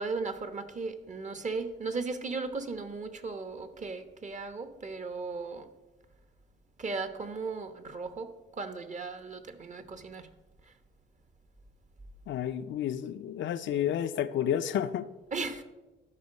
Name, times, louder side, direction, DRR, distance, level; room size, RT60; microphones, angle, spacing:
voice 1, 0.0-5.7 6.8-10.3 15.3-15.6, right 4 dB, 35° right, 9 dB, 1.1 m, -36 dB
voice 2, 12.3-15.1, left 10 dB, 70° left, 10 dB, 0.6 m, -30 dB
13.0 x 5.4 x 5.4 m, 1.1 s
cardioid pair, 90°, 20 cm